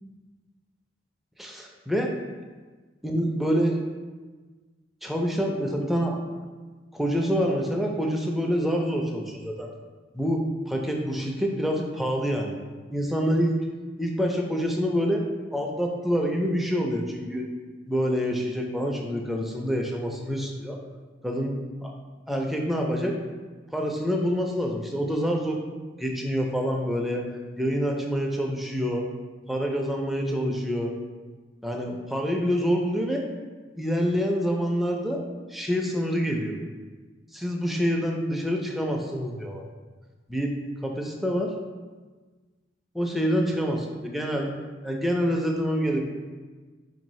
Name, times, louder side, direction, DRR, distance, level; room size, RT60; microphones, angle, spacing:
voice 1, 1.4-2.1 3.0-3.8 5.0-6.4 6.9-9.7 10.1-12.6 12.9-13.6 14.0-15.2 15.5-17.5 17.9-20.8 21.2-21.5 21.8-21.9 22.3-23.2 23.7-25.6 26.0-27.3 27.6-29.1 29.5-31.0 31.6-33.2 33.8-35.2 35.5-36.6 37.3-39.6 40.3-40.5 40.8-41.5 42.9-44.5 44.8-46.0, equal, ahead, 0 dB, 0.3 m, -26 dB
4.2 x 2.6 x 3.0 m, 1.4 s
head